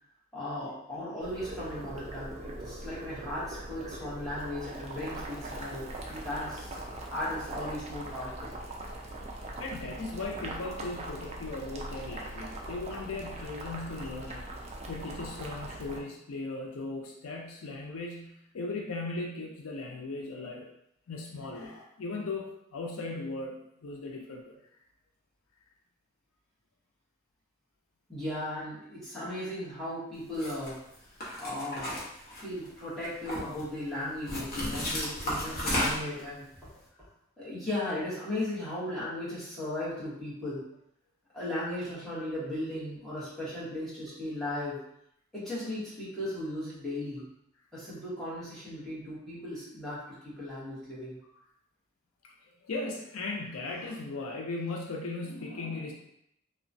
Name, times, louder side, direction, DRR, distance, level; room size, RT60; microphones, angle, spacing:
voice 1, 0.3-8.6 28.1-30.8 31.2-32.0 32.4-36.5 37.4-40.6 41.3-44.8 45.3-47.3 47.7-51.2, left 1 dB, ahead, -10 dB, 1.0 m, -36 dB
Boiling, 1.2-16.0, right 1 dB, 30° right, 0.3 m, -41 dB
voice 2, 9.6-14.5 14.9-20.7 21.1-24.6 52.6-55.9, left 3 dB, 90° left, 0 dB, 0.5 m, -37 dB
sound 1, 30.3-30.7 31.2-32.7 33.0-33.6 34.3-36.2, equal, 45° left, 0.8 m, -33 dB
2.9 x 2.2 x 2.5 m, 0.76 s
head